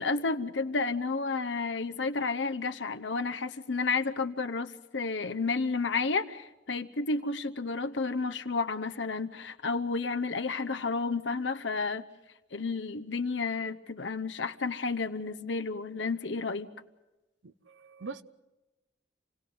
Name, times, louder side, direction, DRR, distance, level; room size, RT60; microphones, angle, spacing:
voice 1, 0.0-12.0 12.5-16.7, left 4 dB, 75° left, 9 dB, 0.9 m, -31 dB
voice 2, 17.4-18.2, right 4 dB, 80° right, 14 dB, 0.8 m, -43 dB
27.5 x 18.0 x 7.8 m, 1.0 s
head